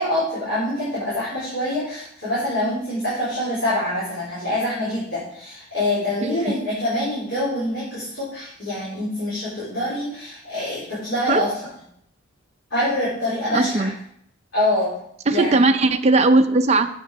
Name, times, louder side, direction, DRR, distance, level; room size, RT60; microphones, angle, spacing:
voice 1, 0.0-11.5 12.7-13.9 14.5-14.9 15.3-15.8, left 1 dB, 65° left, -10 dB, 3.9 m, -25 dB
voice 2, 6.2-6.5 11.3-11.4 13.5-13.9 15.3-16.9, right 2 dB, 30° right, 7 dB, 0.5 m, -18 dB
8.1 x 6.2 x 4.8 m, 0.68 s
head